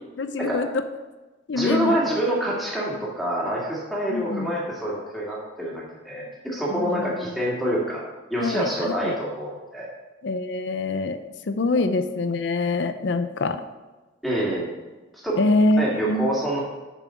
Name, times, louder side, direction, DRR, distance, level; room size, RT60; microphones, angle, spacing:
voice 1, 0.2-0.7 1.5-2.0 4.1-4.5 6.7-7.2 8.4-9.2 10.2-11.2 11.5-13.6 15.4-16.3, left 2 dB, 65° left, 10 dB, 0.5 m, -24 dB
voice 2, 1.5-8.0 8.3-9.9 11.8-11.9 14.2-14.7 15.2-15.4 15.8-16.6, right 1 dB, ahead, -5 dB, 2.0 m, -26 dB
7.2 x 6.1 x 5.7 m, 1.2 s
head